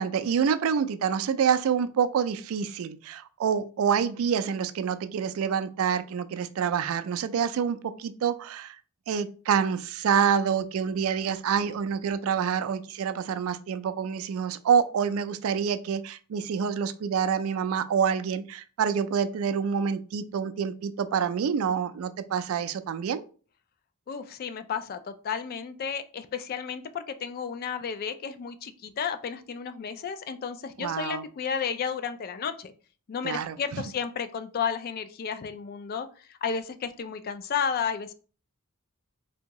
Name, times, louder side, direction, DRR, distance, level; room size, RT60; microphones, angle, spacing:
voice 1, 0.0-8.8 9.1-23.2 30.8-31.2 33.2-33.8, right 7 dB, 70° right, 0.3 m, -27 dB
voice 2, 24.1-32.7 33.1-38.1, left 6 dB, 45° left, 0.3 m, -32 dB
3.4 x 2.7 x 2.9 m
head